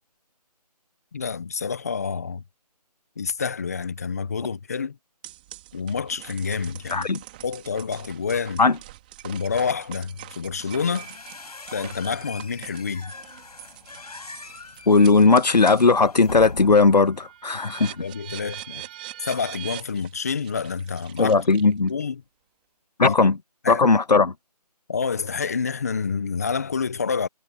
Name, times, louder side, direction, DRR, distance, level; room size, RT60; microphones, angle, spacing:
voice 1, 1.1-2.4 3.2-5.0 5.7-7.1 7.4-8.6 9.2-11.1 11.7-13.1 18.0-18.8 19.2-21.3 21.9-22.2 23.0-23.2 23.6-24.0 24.9-27.3, left 5 dB, 25° left, 1.0 m, -28 dB
sound 1, 5.2-15.9 16.4-22.0, right 15 dB, 15° right, 2.7 m, -43 dB
sound 2, 10.5-17.1, left 3 dB, 70° left, 7.0 m, -41 dB
voice 2, 14.9-17.9 21.2-21.9 23.0-23.3 23.7-24.3, left 4 dB, 90° left, 1.6 m, -17 dB
figure-of-eight pair, 175°, 21 cm